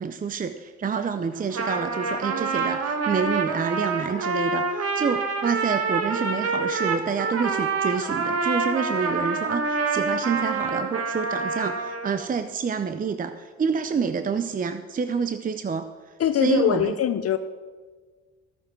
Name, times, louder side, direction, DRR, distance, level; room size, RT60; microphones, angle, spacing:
voice 1, 0.0-15.9 16.4-16.9, right 6 dB, 30° right, 9 dB, 0.6 m, -28 dB
Trumpet, 1.4-12.2, right 4 dB, 55° right, 1.5 m, -27 dB
sound 1, 6.1-10.3, right 1 dB, 75° right, 3.7 m, -46 dB
voice 2, 16.2-17.4, left 10 dB, 55° left, 11 dB, 0.6 m, -22 dB
13.5 x 8.9 x 4.5 m, 1.5 s
cardioid pair, 90°, 30 cm